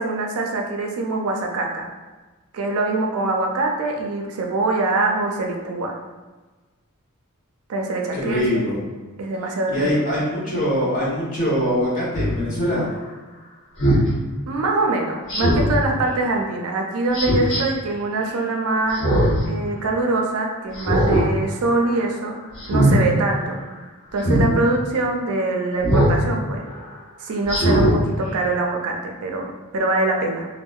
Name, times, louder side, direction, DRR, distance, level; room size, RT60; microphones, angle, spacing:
voice 1, 0.0-1.9 2.5-5.9 7.7-8.7 9.2-10.1 14.5-19.1 19.5-22.3 22.7-23.6 24.1-26.6 27.2-30.5, right 2 dB, 75° right, 2 dB, 0.4 m, -23 dB
voice 2, 8.1-8.8 9.7-12.9, equal, 40° left, -6 dB, 0.8 m, -23 dB
Speech synthesizer, 12.1-12.3 13.8-14.1 15.3-15.8 17.1-17.6 18.9-19.4 19.8-19.9 20.7-21.3 21.6-21.9 22.6-23.0 24.2-24.5 25.8-26.2 26.7-26.8 27.5-28.0 28.4-28.5, right 1 dB, 60° left, 1.0 m, -19 dB
2.7 x 2.1 x 2.3 m, 1.3 s
head